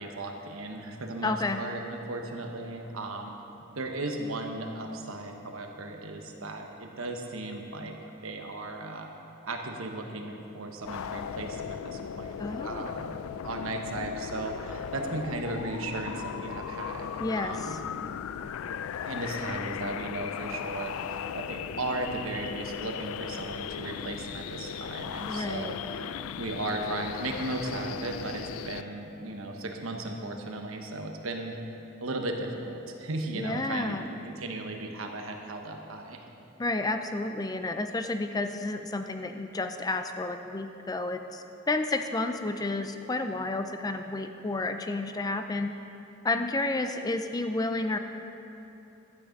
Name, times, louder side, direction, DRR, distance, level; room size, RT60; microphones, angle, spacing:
voice 1, 0.0-3.3 3.7-8.0 8.2-9.1 9.4-13.1 13.4-17.8 19.0-26.1 26.4-31.6 32.0-33.9 34.2-36.2, right 2 dB, 85° right, 3 dB, 1.1 m, -36 dB
voice 2, 1.2-1.6 12.4-12.8 17.2-17.8 25.3-25.7 33.3-34.0 36.6-45.7 46.2-48.0, left 2 dB, 20° left, 7 dB, 0.4 m, -31 dB
sound 1, 10.8-28.8, left 8 dB, 85° left, 0.3 m, -37 dB
12.0 x 8.7 x 5.2 m, 3.0 s
head